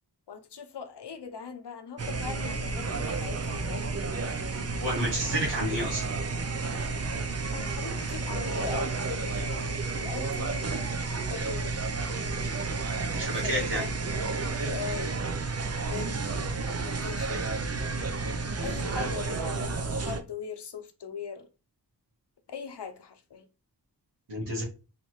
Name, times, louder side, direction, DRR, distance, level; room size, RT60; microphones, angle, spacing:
voice 1, 0.3-3.8 7.5-10.7 11.3-11.8 13.3-13.9 14.6-15.1 15.9-16.1 16.7-17.5 18.6-21.5 22.5-23.4, left 6 dB, 75° left, 0.8 m, -40 dB
sound 1, 2.0-20.2, right 3 dB, 35° right, 0.6 m, -31 dB
voice 2, 4.8-6.0 13.1-13.8 24.3-24.6, equal, 85° right, 1.8 m, -30 dB
4.1 x 3.2 x 3.1 m
wide cardioid pair, 65°, 41 cm